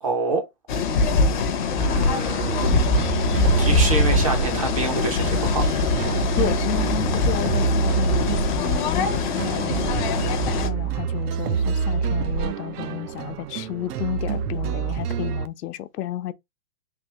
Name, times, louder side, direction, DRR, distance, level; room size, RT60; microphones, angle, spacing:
voice 1, 0.0-0.4 1.8-3.1 3.5-5.6, right 3 dB, 25° right, 0.4 m, -27 dB
sound 1, 0.7-10.7, left 4 dB, 35° left, 0.4 m, -23 dB
sound 2, 2.4-15.5, right 6 dB, 80° right, 0.6 m, -27 dB
voice 2, 6.1-16.3, left 13 dB, 90° left, 0.6 m, -32 dB
3.4 x 2.6 x 2.8 m
hypercardioid pair, 150°, 46 cm